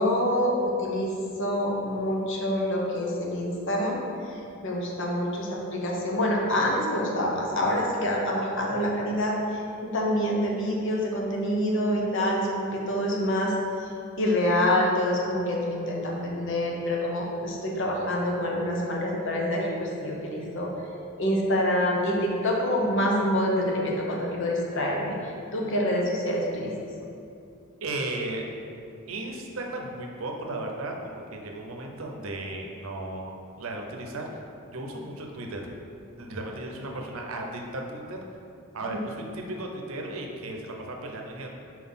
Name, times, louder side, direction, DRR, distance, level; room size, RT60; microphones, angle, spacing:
voice 1, 0.0-13.5 13.8-13.9 14.2-20.7 21.2-26.7, left 1 dB, 60° left, -2 dB, 1.0 m, -26 dB
voice 2, 27.8-28.5 29.1-34.4 34.7-35.6 36.2-38.2 38.7-41.5, right 2 dB, 70° right, 1 dB, 0.7 m, -35 dB
4.5 x 4.0 x 5.6 m, 2.6 s
head